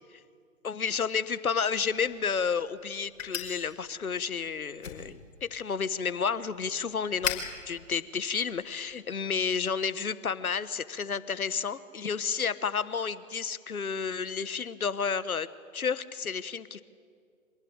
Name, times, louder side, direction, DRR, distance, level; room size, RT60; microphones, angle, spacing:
voice 1, 0.6-15.5 15.7-16.8, left 6 dB, 90° left, 14 dB, 1.4 m, -31 dB
sound 1, 1.8-9.0, left 7 dB, 60° left, 5.4 m, -41 dB
26.0 x 19.0 x 8.8 m, 2.2 s
hypercardioid pair, 145°, 42 cm